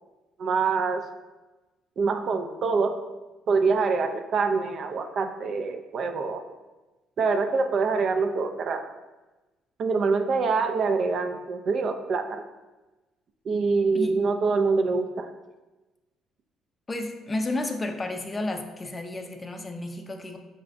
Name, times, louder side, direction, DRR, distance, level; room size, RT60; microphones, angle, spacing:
voice 1, 0.4-1.0 2.0-2.9 3.5-6.4 7.2-8.8 9.8-12.4 13.5-15.3, right 4 dB, 55° right, 6 dB, 0.4 m, -25 dB
voice 2, 16.9-20.4, left 2 dB, 25° left, 5 dB, 0.4 m, -32 dB
4.7 x 3.2 x 2.5 m, 1.1 s
cardioid pair, 105°, 0 cm